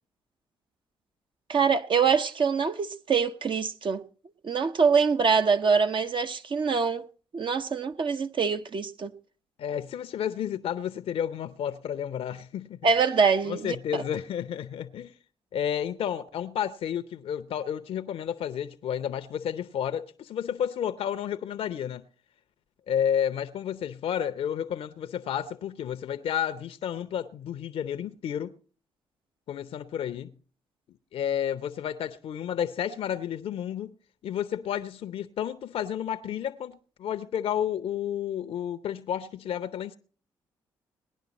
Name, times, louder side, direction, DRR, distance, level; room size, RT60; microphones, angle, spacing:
voice 1, 1.5-4.0 4.4-7.1 7.3-9.1 12.8-14.0, right 5 dB, 50° right, 0.9 m, -24 dB
voice 2, 9.6-12.9 13.4-15.1 15.5-22.0 22.9-28.5 29.5-30.3 31.1-33.9 34.2-40.0, left 9 dB, 65° left, 0.6 m, -31 dB
18.5 x 10.5 x 4.1 m
hypercardioid pair, 45°, 11 cm